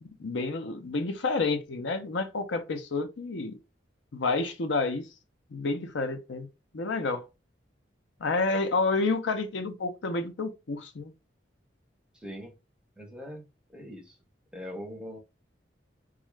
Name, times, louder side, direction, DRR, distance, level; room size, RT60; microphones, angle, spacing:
voice 1, 0.0-3.6 4.1-5.0 5.5-6.5 6.7-7.2 8.2-11.1, left 3 dB, 80° left, 0.6 m, -29 dB
voice 2, 12.1-12.5 13.0-13.4 13.7-14.2 14.5-15.2, equal, 5° right, 0.6 m, -41 dB
3.6 x 2.3 x 3.1 m
head